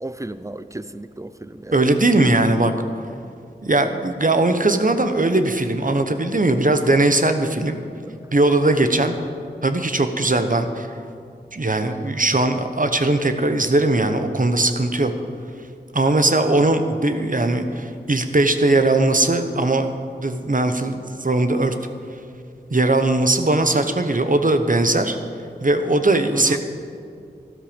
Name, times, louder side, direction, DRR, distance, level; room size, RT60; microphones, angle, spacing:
voice 1, 0.0-1.7 8.1-8.2 9.2-9.3 26.3-26.6, right 1 dB, 15° right, 13 dB, 0.6 m, -33 dB
voice 2, 1.7-2.7 3.6-7.8 8.3-9.2 9.6-10.9 11.5-15.1 15.9-19.9 20.2-21.7 22.7-25.2 25.6-26.6, right 2 dB, 50° right, 7 dB, 1.0 m, -19 dB
13.5 x 12.5 x 5.2 m, 2.3 s
wide cardioid pair, 40°, 18 cm